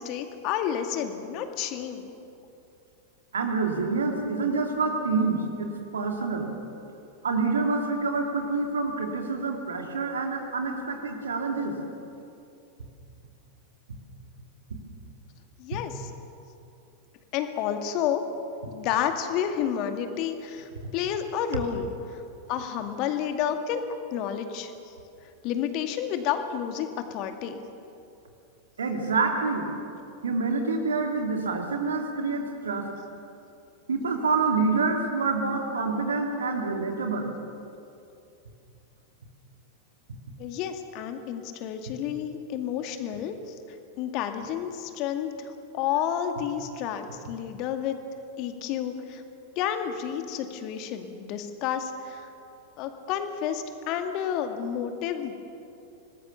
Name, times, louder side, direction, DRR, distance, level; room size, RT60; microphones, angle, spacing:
voice 1, 0.0-2.1 15.6-16.1 17.3-18.2 18.7-22.2 22.5-23.8 24.1-24.7 25.4-27.6 40.4-48.0 48.4-49.2 49.6-52.3 52.8-55.3, left 9 dB, 40° left, 6 dB, 2.2 m, -30 dB
voice 2, 3.3-6.5 7.2-11.8 28.8-29.7 30.2-32.9 33.9-37.3, right 4 dB, 70° right, 3 dB, 2.9 m, -27 dB
25.5 x 20.0 x 7.1 m, 2.6 s
figure-of-eight pair, 90°, 0 cm